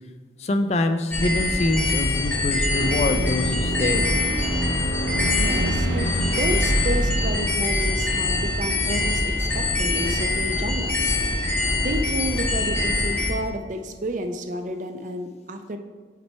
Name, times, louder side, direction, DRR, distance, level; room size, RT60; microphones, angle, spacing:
voice 1, 0.5-4.0, left 2 dB, 35° left, 7 dB, 0.3 m, -24 dB
sound 1, 1.1-13.3, left 2 dB, 10° left, 1.7 m, -24 dB
sound 2, 2.7-9.4, right 1 dB, 70° left, 0.7 m, -28 dB
voice 2, 5.4-11.2 11.8-15.8, right 1 dB, 40° right, 6 dB, 0.5 m, -31 dB
5.9 x 4.3 x 4.4 m, 1.4 s
head